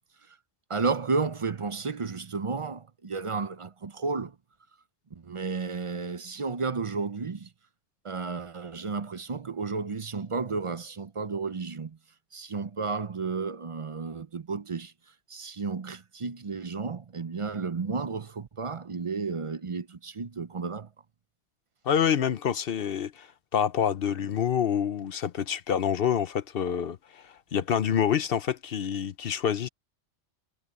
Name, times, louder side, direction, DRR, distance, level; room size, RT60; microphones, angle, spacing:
voice 1, 0.7-4.3 5.2-7.5 8.0-12.0 12.3-14.9 15.3-20.9, right 4 dB, 35° right, 0.6 m, -32 dB
voice 2, 21.8-23.3 23.5-29.7, left 8 dB, 60° left, 0.8 m, -27 dB
omnidirectional pair, 1.2 m